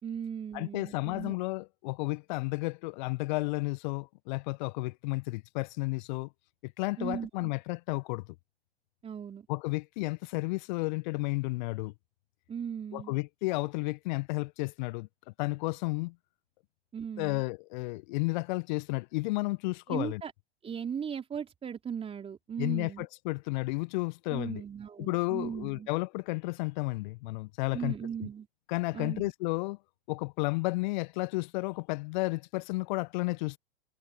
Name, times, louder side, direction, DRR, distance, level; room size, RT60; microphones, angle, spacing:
voice 1, 0.0-1.4 7.0-7.5 9.0-9.5 12.5-13.1 16.9-17.4 19.9-20.3 20.6-23.1 24.3-25.9 27.7-28.5 28.9-29.3, right 7 dB, 15° right, 3.4 m, -37 dB
voice 2, 0.5-6.3 6.6-8.2 9.5-11.9 12.9-15.1 15.4-16.1 17.2-20.2 22.6-24.6 25.0-27.9 28.7-29.8 30.1-33.6, left 24 dB, 45° left, 1.5 m, -32 dB
figure-of-eight pair, 105°, 33 cm